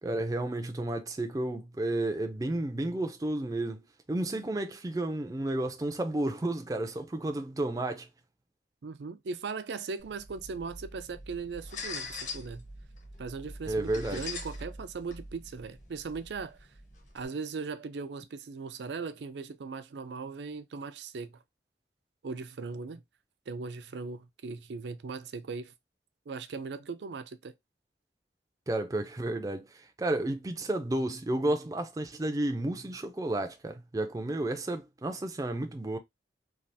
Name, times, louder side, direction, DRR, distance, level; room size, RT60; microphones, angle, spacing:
voice 1, 0.0-3.8 4.1-8.1 13.7-14.2 28.7-36.0, right 1 dB, 20° right, 0.4 m, -32 dB
voice 2, 8.8-12.6 13.2-16.6 17.1-21.4 22.2-23.0 23.5-25.7 26.3-27.5, right 4 dB, 80° right, 0.4 m, -39 dB
sound 1, 10.0-17.3, left 2 dB, 45° left, 0.8 m, -43 dB
3.3 x 2.4 x 2.6 m
head